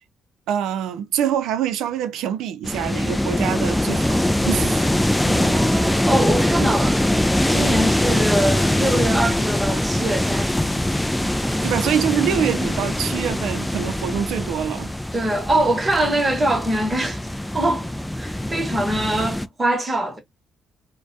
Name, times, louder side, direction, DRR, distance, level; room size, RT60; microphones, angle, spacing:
voice 1, 0.5-4.9 11.6-14.9, right 9 dB, 85° right, 0.4 m, -25 dB
sound 1, 2.6-19.5, left 1 dB, 5° left, 0.3 m, -22 dB
voice 2, 5.2-7.0 7.5-10.9 15.1-17.2 17.5-17.9 18.2-20.2, right 1 dB, 25° right, 0.9 m, -23 dB
2.2 x 2.1 x 2.6 m
cardioid pair, 90°, 0 cm